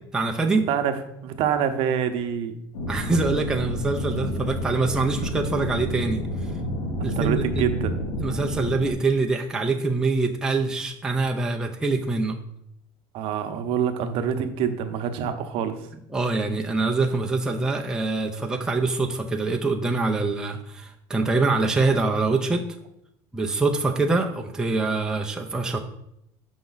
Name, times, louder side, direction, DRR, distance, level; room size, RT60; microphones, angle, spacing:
voice 1, 0.1-0.7 2.9-6.2 7.0-7.6 8.2-12.4 16.1-22.6 23.3-25.8, right 3 dB, 5° right, 1 dB, 0.5 m, -24 dB
voice 2, 1.2-2.5 7.0-8.0 13.1-15.9, right 8 dB, 60° right, 8 dB, 0.8 m, -26 dB
sound 1, 2.7-8.9, equal, 85° left, 1.6 m, -29 dB
7.0 x 5.2 x 3.9 m, 0.77 s
cardioid pair, 140°, 11 cm